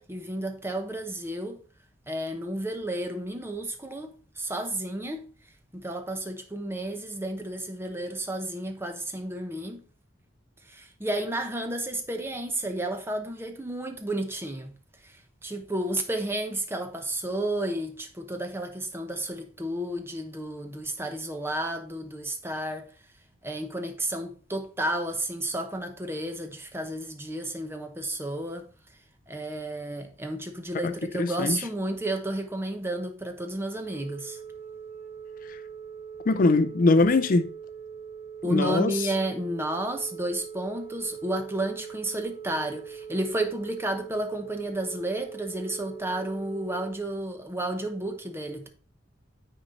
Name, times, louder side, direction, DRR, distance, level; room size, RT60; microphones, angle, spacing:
voice 1, 0.0-1.6 2.1-5.3 5.7-9.8 10.6-14.8 15.0-22.9 23.4-28.6 29.3-34.4 38.4-48.7, right 1 dB, 10° right, 1.0 m, -32 dB
voice 2, 31.2-31.6 36.3-37.5 38.5-38.9, left 3 dB, 45° left, 0.4 m, -21 dB
Telephone, 33.8-46.9, right 7 dB, 40° right, 1.7 m, -42 dB
9.6 x 4.2 x 4.0 m
head